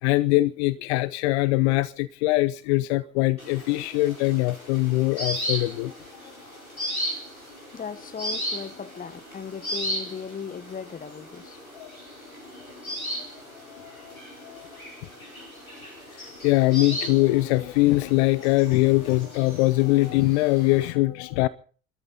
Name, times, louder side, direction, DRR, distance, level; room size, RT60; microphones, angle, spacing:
voice 1, 0.0-6.0 11.7-11.9 13.2-13.3 13.5-14.7 16.1-21.5, left 19 dB, 55° left, 0.7 m, -23 dB
sound 1, 3.4-20.9, equal, 85° left, 4.7 m, -36 dB
voice 2, 7.7-11.6, left 7 dB, 20° left, 1.2 m, -37 dB
25.5 x 13.5 x 4.1 m
figure-of-eight pair, 65°, 41 cm